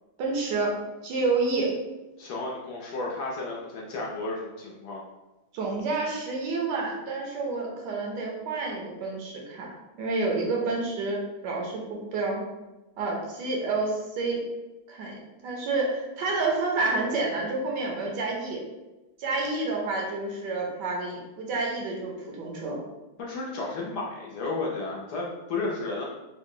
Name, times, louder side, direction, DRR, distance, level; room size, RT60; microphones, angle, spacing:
voice 1, 0.2-0.8 1.0-1.8 5.5-9.7 10.0-12.4 13.0-14.4 14.9-18.6 19.2-22.8, right 3 dB, 70° right, -1 dB, 1.2 m, -29 dB
voice 2, 2.2-5.0 23.2-26.0, left 3 dB, 70° left, -3 dB, 1.1 m, -33 dB
3.7 x 2.1 x 3.6 m, 1.1 s
omnidirectional pair, 2.1 m